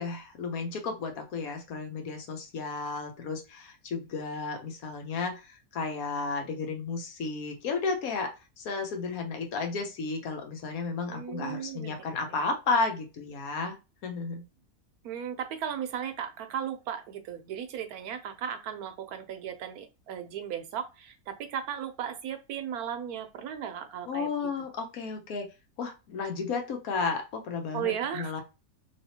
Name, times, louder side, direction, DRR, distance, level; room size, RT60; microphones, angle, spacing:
voice 1, 0.0-8.3 8.6-13.8 14.0-14.4 24.1-25.5 25.8-28.4, left 4 dB, 65° left, 4 dB, 1.2 m, -33 dB
voice 2, 11.1-12.2 15.0-24.3 27.7-28.4, right 9 dB, 75° right, 7 dB, 1.1 m, -36 dB
3.4 x 2.9 x 2.7 m, 0.28 s
omnidirectional pair, 1.7 m